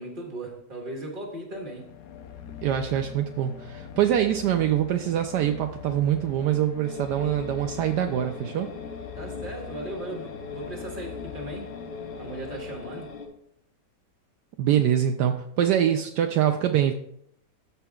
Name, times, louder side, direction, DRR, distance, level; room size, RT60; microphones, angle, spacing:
voice 1, 0.0-1.9 9.2-11.7 12.2-13.1, right 2 dB, 30° right, 1.7 m, -37 dB
sound 1, 1.5-13.4, left 9 dB, 65° left, 1.1 m, -43 dB
voice 2, 2.6-8.7 14.6-16.9, right 10 dB, 75° right, 1.1 m, -24 dB
sound 2, 6.8-13.3, left 4 dB, 80° left, 1.8 m, -40 dB
13.5 x 5.7 x 2.3 m
omnidirectional pair, 1.9 m